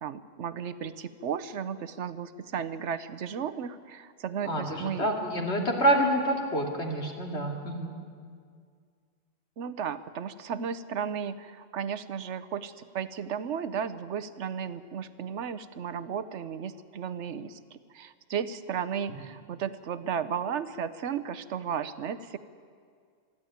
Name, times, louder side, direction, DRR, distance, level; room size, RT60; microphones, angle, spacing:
voice 1, 0.0-5.1 9.6-22.4, right 7 dB, 85° right, 13 dB, 1.1 m, -34 dB
voice 2, 4.4-7.9 19.1-19.2, right 1 dB, 70° left, 0 dB, 2.9 m, -27 dB
26.0 x 11.0 x 9.2 m, 2.1 s
omnidirectional pair, 1.2 m